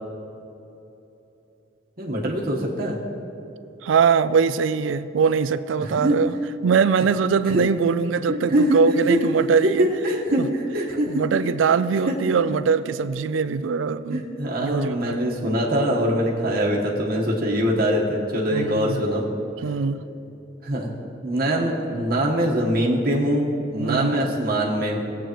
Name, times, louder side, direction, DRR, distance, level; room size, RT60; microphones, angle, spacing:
voice 1, 2.0-3.0 5.8-6.2 7.5-7.6 8.3-8.8 9.1-9.2 9.6-11.4 12.1-12.2 14.1-19.3 20.6-20.9 21.2-25.0, right 1 dB, 55° right, -3 dB, 1.3 m, -23 dB
voice 2, 3.8-6.3 6.6-9.9 10.4-10.5 11.1-14.3 14.6-15.2 18.5-19.0 19.6-20.0 23.8-24.3, right 5 dB, 85° right, 15 dB, 0.4 m, -22 dB
17.0 x 8.3 x 3.0 m, 3.0 s
head